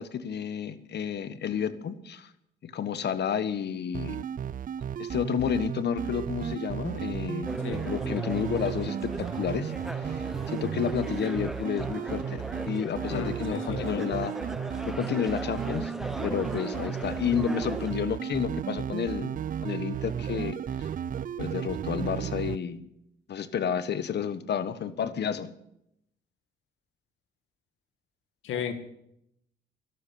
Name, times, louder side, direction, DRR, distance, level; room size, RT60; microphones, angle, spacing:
voice 1, 0.0-2.3 2.6-4.2 5.0-7.5 7.8-9.7 10.0-14.3 14.8-15.9 16.2-19.3 19.6-20.9 21.4-22.8 23.3-25.5, left 7 dB, 60° left, 12 dB, 1.4 m, -31 dB
sound 1, 3.9-22.6, right 8 dB, 45° right, 0.5 m, -34 dB
sound 2, 7.5-17.9, equal, ahead, 0.8 m, -39 dB
voice 2, 13.1-14.0 28.4-28.7, left 8 dB, 80° left, 8 dB, 1.9 m, -34 dB
13.5 x 11.5 x 8.6 m, 0.79 s
cardioid pair, 90°, 20 cm